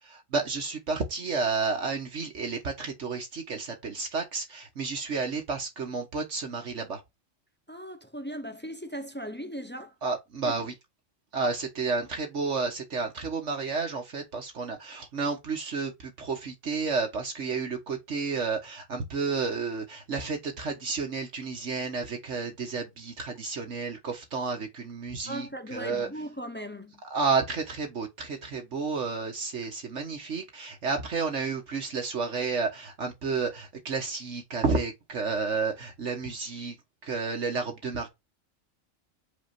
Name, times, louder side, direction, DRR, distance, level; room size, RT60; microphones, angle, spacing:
voice 1, 0.1-7.0 10.0-10.7 11.3-26.1 27.1-36.7 37.0-38.1, right 4 dB, 60° right, 1.5 m, -31 dB
voice 2, 7.7-9.9 10.4-10.6 25.3-27.0, equal, 10° left, 0.6 m, -38 dB
5.4 x 4.3 x 5.9 m
omnidirectional pair, 1.4 m